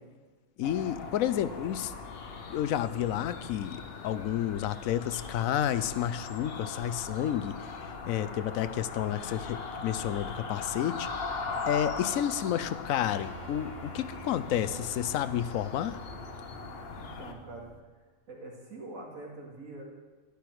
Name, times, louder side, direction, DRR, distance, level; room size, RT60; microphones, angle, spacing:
voice 1, 0.6-1.9 2.5-7.7 8.1-11.1 11.7-16.0, left 11 dB, 80° left, 14 dB, 1.0 m, -30 dB
sound 1, 0.6-17.3, left 4 dB, 50° left, 1.0 m, -40 dB
Grand Piano Inside, 7.2-17.8, right 6 dB, 40° right, 0.9 m, -52 dB
voice 2, 17.0-17.7 18.3-19.8, right 2 dB, 75° right, -1 dB, 2.6 m, -44 dB
12.0 x 11.0 x 4.7 m, 1.4 s
omnidirectional pair, 1.4 m